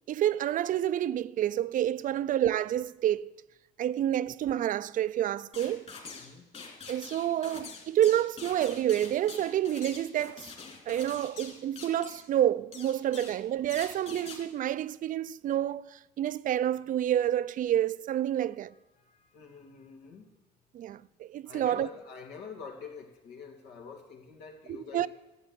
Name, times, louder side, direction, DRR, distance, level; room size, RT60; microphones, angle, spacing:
voice 1, 0.1-3.3 3.8-5.9 6.9-10.5 10.9-18.7 20.7-21.9 24.7-25.1, right 11 dB, 50° right, 0.4 m, -29 dB
sound 1, 5.5-6.3 6.5-12.3 12.7-13.4 13.7-14.4, left 5 dB, 40° left, 3.2 m, -45 dB
voice 2, 6.1-6.5 18.7-20.3 21.4-25.1, left 5 dB, 85° left, 2.6 m, -46 dB
14.0 x 8.6 x 8.2 m
cardioid pair, 110°, 17 cm